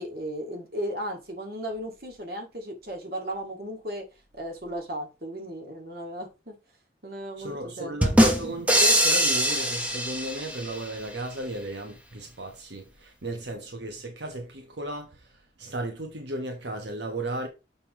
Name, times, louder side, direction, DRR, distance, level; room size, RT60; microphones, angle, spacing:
voice 1, 0.0-4.1 4.3-6.6 7.0-8.0, equal, 55° right, 1.9 m, -35 dB
voice 2, 7.4-17.5, right 1 dB, 85° right, 1.2 m, -35 dB
sound 1, 8.0-10.8, equal, 10° right, 1.0 m, -22 dB
6.7 x 5.5 x 3.0 m
head